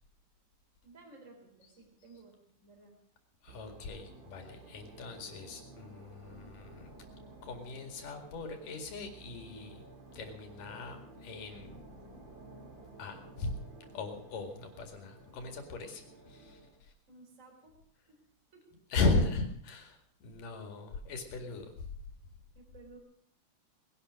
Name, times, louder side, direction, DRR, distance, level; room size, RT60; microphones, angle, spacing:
voice 1, 0.8-2.9 17.1-17.8 18.1-18.2 18.5-18.7 22.5-23.0, right 3 dB, 20° right, 2 dB, 4.0 m, -56 dB
voice 2, 3.4-6.9 7.4-9.8 10.1-11.8 13.0-13.6 13.9-16.9 18.9-21.9, left 3 dB, 65° left, 5 dB, 3.7 m, -37 dB
sound 1, 3.5-16.8, right 2 dB, 35° right, 2.4 m, -53 dB
20.0 x 11.5 x 6.3 m, 0.64 s
omnidirectional pair, 4.3 m